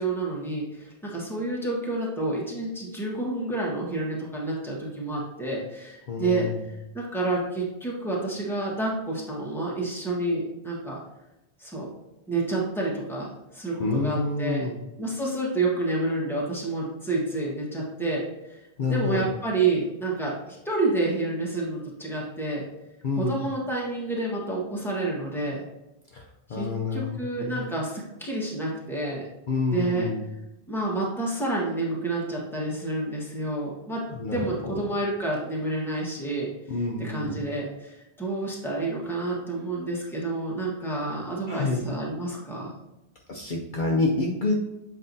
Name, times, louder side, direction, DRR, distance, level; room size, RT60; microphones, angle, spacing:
voice 1, 0.0-6.5 6.9-11.0 11.6-11.9 12.3-13.3 13.5-14.7 15.0-22.6 23.2-25.6 26.5-29.2 29.7-30.1 30.7-34.0 34.3-36.5 37.0-42.7, right 2 dB, ahead, -4 dB, 1.3 m, -29 dB
voice 2, 6.1-6.6 13.8-14.7 18.8-19.2 23.0-23.4 26.1-26.2 26.5-27.6 29.5-30.2 34.1-34.7 36.7-37.4 41.5-41.8 43.3-44.5, left 3 dB, 55° left, -2 dB, 0.8 m, -28 dB
7.7 x 4.6 x 2.7 m, 0.93 s
omnidirectional pair, 1.1 m